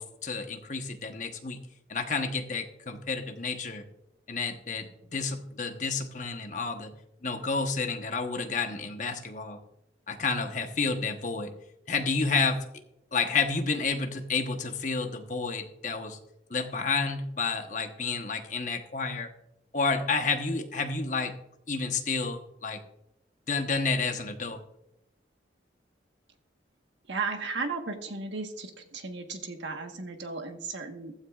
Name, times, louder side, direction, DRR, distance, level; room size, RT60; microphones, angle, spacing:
voice 1, 0.0-1.6 1.9-3.8 4.3-6.9 7.2-9.6 10.1-11.5 11.9-12.6 13.1-16.2 16.5-19.3 19.7-21.3 21.7-22.8 23.5-24.6, left 4 dB, 40° left, 5 dB, 1.1 m, -30 dB
voice 2, 27.1-31.1, right 4 dB, 75° right, 5 dB, 1.4 m, -35 dB
15.0 x 13.0 x 2.4 m, 0.83 s
head